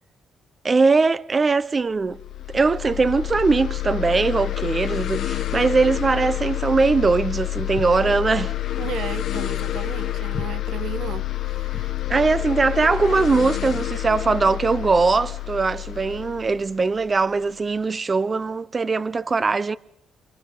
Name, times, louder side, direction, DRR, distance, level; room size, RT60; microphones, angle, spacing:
voice 1, 0.6-2.2 2.5-8.5 12.1-19.8, right 4 dB, 30° right, 0.9 m, -21 dB
sound 1, 2.1-17.5, left 15 dB, 70° left, 1.1 m, -28 dB
Walk footsteps, 7.6-12.0, left 3 dB, 30° left, 1.7 m, -39 dB
voice 2, 8.8-12.0, right 9 dB, 75° right, 1.2 m, -35 dB
29.5 x 28.5 x 4.0 m
cardioid pair, 90°, 0 cm